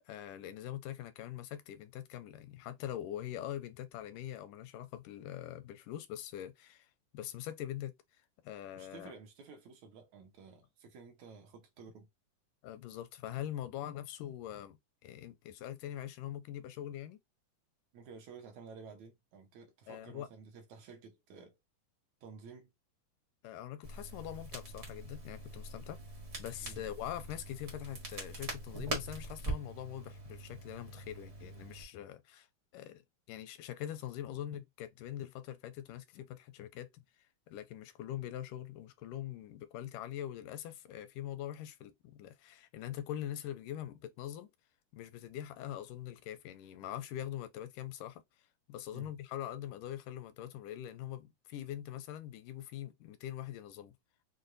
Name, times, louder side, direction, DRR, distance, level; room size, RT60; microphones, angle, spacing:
voice 1, 0.0-6.9 7.1-7.9 8.4-9.1 12.6-17.2 19.9-20.3 23.4-26.0 26.4-32.5 32.7-33.0 33.3-37.0 37.5-44.5 44.9-48.2 48.7-53.9, left 11 dB, 85° left, 2.2 m, -43 dB
voice 2, 8.8-12.1 17.9-21.6 22.2-22.7 26.6-26.8 48.9-49.1, right 5 dB, 70° right, 2.1 m, -52 dB
Crackle, 23.8-31.8, right 2 dB, 45° right, 0.8 m, -43 dB
6.2 x 2.2 x 2.6 m
omnidirectional pair, 3.6 m